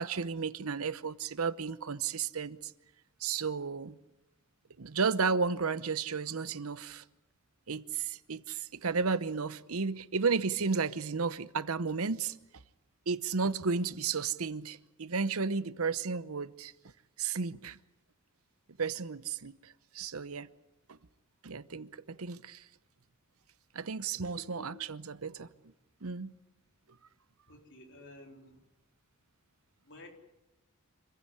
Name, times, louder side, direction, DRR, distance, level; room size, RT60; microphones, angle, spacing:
voice 1, 0.0-2.7 3.2-4.0 4.8-7.0 7.7-12.3 13.1-16.7 17.2-17.8 18.8-20.5 21.4-22.6 23.7-25.5 26.0-26.3, right 5 dB, 70° right, 0.8 m, -33 dB
voice 2, 24.3-24.8 27.5-28.6 29.8-30.1, left 2 dB, 55° left, 3.9 m, -52 dB
26.5 x 15.5 x 9.8 m
head